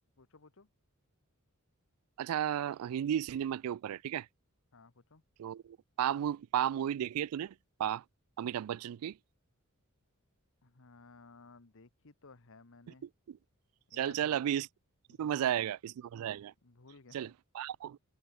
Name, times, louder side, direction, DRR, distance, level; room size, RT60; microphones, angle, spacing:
voice 1, 0.2-0.7 4.7-5.2 10.6-13.1 13.9-14.4 15.1-15.7 16.6-17.3, left 3 dB, 65° left, 1.3 m, -57 dB
voice 2, 2.2-4.3 5.4-7.5 7.8-8.0 8.4-9.2 13.0-13.4 13.9-14.7 15.2-16.5 17.1-18.0, right 10 dB, 80° right, 0.3 m, -34 dB
head